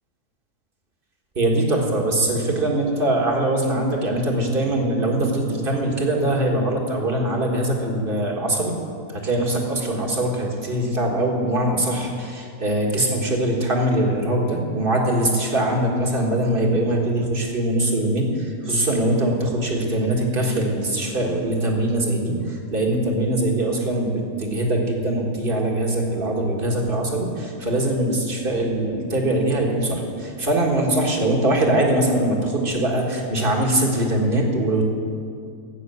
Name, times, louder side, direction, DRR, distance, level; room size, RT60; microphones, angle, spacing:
voice 1, 1.4-8.7 9.1-34.9, right 1 dB, 40° right, 0 dB, 1.9 m, -22 dB
12.5 x 8.5 x 7.9 m, 2.4 s
omnidirectional pair, 1.5 m